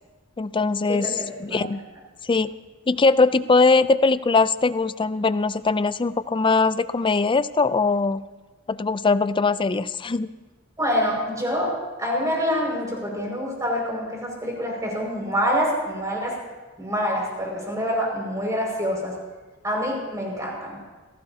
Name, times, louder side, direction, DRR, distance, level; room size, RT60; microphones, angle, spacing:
voice 1, 0.4-1.1 1.4-1.8 2.2-2.5 2.9-8.2 8.7-10.3, left 3 dB, 25° left, 15 dB, 0.4 m, -21 dB
voice 2, 0.9-1.6 10.8-16.4 16.8-19.2 19.6-20.8, equal, 15° right, -2 dB, 5.7 m, -26 dB
29.0 x 17.0 x 2.8 m, 1.3 s
head